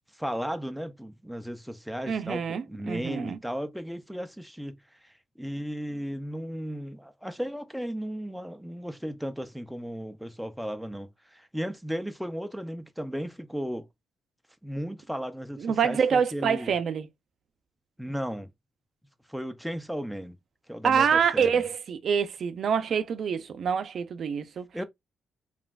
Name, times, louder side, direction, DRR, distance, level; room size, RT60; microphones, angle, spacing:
voice 1, 0.2-4.8 5.0-13.9 14.6-16.7 18.0-18.5 19.3-20.4 20.7-21.6 24.7-24.8, equal, ahead, 0.5 m, -35 dB
voice 2, 2.1-3.4 15.6-17.1 20.8-24.7, right 7 dB, 55° right, 0.5 m, -26 dB
3.1 x 2.4 x 2.4 m
cardioid pair, 90°, 0 cm